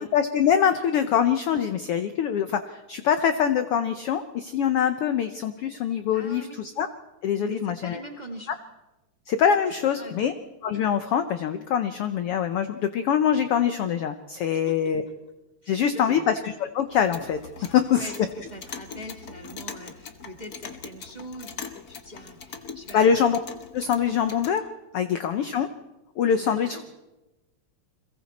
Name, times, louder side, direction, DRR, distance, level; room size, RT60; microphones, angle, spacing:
voice 1, 0.0-6.9 7.2-8.0 9.3-10.3 10.6-15.0 15.7-17.4 17.7-18.1 22.9-23.4 23.7-24.6 24.9-25.7 26.2-26.8, left 8 dB, 70° left, 9 dB, 1.4 m, -24 dB
voice 2, 6.1-6.6 7.4-8.6 9.7-10.3 14.6-14.8 15.6-16.3 17.6-23.3 25.4-25.7 26.4-26.8, equal, 20° right, 2 dB, 1.5 m, -42 dB
Clock, 16.9-24.6, left 6 dB, 55° left, 1.0 m, -42 dB
29.5 x 22.0 x 4.2 m, 1.0 s
omnidirectional pair, 3.5 m